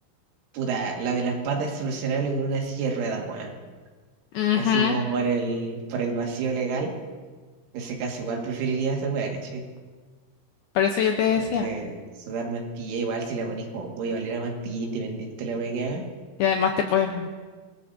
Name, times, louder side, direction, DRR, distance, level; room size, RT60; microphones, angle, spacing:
voice 1, 0.5-3.5 4.5-6.9 7.7-9.6 11.3-16.1, right 4 dB, 85° right, 0 dB, 4.4 m, -29 dB
voice 2, 4.3-5.0 10.8-11.7 16.4-17.3, left 8 dB, 80° left, 3 dB, 2.2 m, -22 dB
25.0 x 19.0 x 2.7 m, 1.4 s
omnidirectional pair, 5.5 m